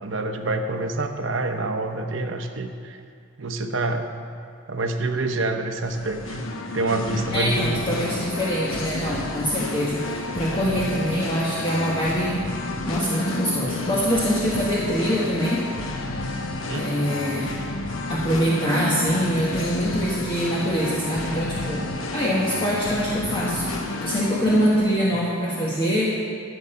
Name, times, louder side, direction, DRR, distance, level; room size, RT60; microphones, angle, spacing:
voice 1, 0.0-3.0 3.4-4.1 4.7-6.4 6.7-8.0 16.7-17.0 25.1-25.2, right 2 dB, 70° right, 6 dB, 0.8 m, -27 dB
Singing, 5.8-24.9, left 2 dB, 80° left, 1.0 m, -31 dB
voice 2, 7.3-12.4 12.9-15.6 16.7-17.5 18.1-23.7 24.0-26.1, equal, 25° left, -6 dB, 1.2 m, -24 dB
13.0 x 6.9 x 5.6 m, 2.3 s
head